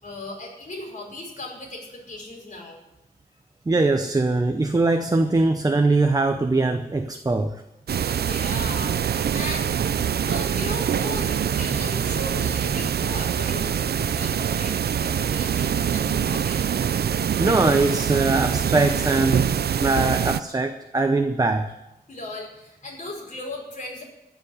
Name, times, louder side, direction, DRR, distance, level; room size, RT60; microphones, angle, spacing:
voice 1, 0.0-2.8 8.2-9.7 10.2-16.7 22.1-24.0, left 2 dB, 50° left, -2 dB, 5.3 m, -37 dB
voice 2, 3.7-7.6 11.5-11.9 12.7-12.8 17.1-21.7, right 3 dB, 25° right, 6 dB, 0.8 m, -22 dB
sound 1, 7.9-20.4, right 8 dB, 80° right, 0.5 m, -24 dB
14.5 x 7.2 x 9.6 m, 0.93 s
wide cardioid pair, 125°, 16 cm